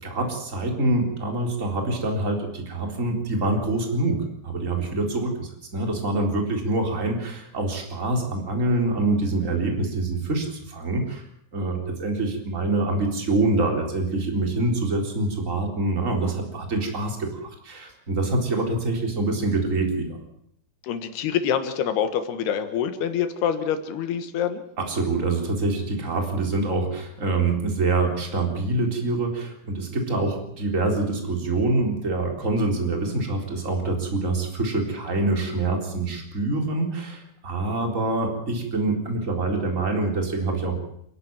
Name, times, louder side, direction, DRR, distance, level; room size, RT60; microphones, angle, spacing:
voice 1, 0.0-4.2 4.4-11.2 11.5-20.2 24.8-40.8, right 2 dB, 20° right, 3 dB, 3.9 m, -25 dB
voice 2, 20.8-24.6, left 8 dB, 85° left, 9 dB, 3.4 m, -26 dB
29.0 x 12.0 x 9.1 m, 0.74 s
omnidirectional pair, 4.5 m